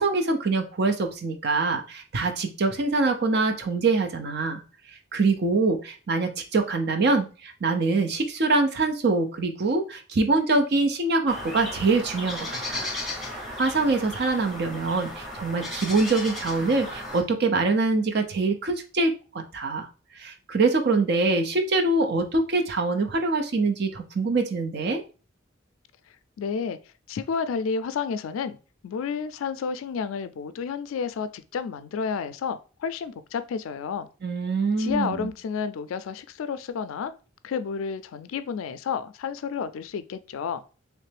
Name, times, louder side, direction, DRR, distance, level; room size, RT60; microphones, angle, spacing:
voice 1, 0.0-4.6 5.1-12.9 13.6-19.9 20.2-25.0 34.2-35.3, right 3 dB, 55° right, 0.5 m, -24 dB
sound 1, 11.3-17.2, left 1 dB, ahead, 0.9 m, -35 dB
voice 2, 26.4-26.8 27.1-28.6 28.8-34.1 34.8-37.1 37.4-40.6, left 6 dB, 80° left, 0.3 m, -31 dB
3.3 x 3.0 x 3.3 m
head